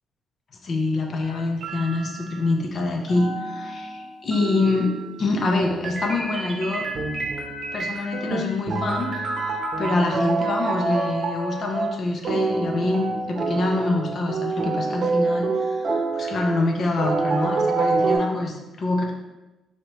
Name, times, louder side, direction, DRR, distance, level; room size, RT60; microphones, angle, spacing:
voice 1, 0.6-4.9 5.2-6.9 7.7-19.1, left 2 dB, 50° left, 2 dB, 0.7 m, -25 dB
sound 1, 1.2-2.5 3.1-18.2, right 3 dB, 55° right, 0.7 m, -27 dB
4.2 x 3.1 x 3.0 m, 1.0 s
cardioid pair, 90°, 0 cm